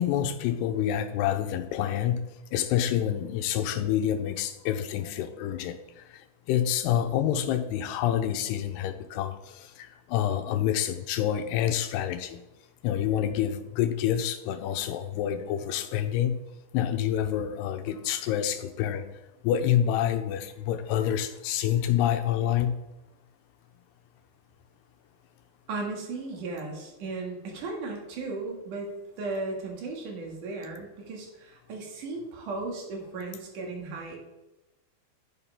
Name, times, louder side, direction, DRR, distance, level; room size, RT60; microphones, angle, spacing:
voice 1, 0.0-2.2 2.5-6.2 6.5-12.4 12.8-16.4 16.7-19.1 19.4-22.8, left 10 dB, 85° left, 8 dB, 2.6 m, -27 dB
voice 2, 25.7-34.2, right 3 dB, 50° right, 0 dB, 3.5 m, -36 dB
11.0 x 10.0 x 3.7 m, 0.98 s
omnidirectional pair, 5.0 m